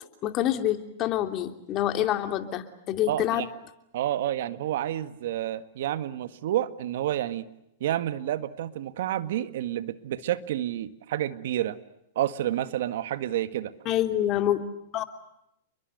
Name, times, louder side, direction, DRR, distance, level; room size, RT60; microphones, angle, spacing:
voice 1, 0.2-3.4 13.8-14.6 14.9-15.0, left 12 dB, 40° left, 7 dB, 2.9 m, -26 dB
voice 2, 3.1-3.5 3.9-7.5 7.8-11.8 12.1-13.7, right 12 dB, 65° right, 12 dB, 1.7 m, -29 dB
30.0 x 22.5 x 8.1 m, 0.81 s
hypercardioid pair, 115°, 0 cm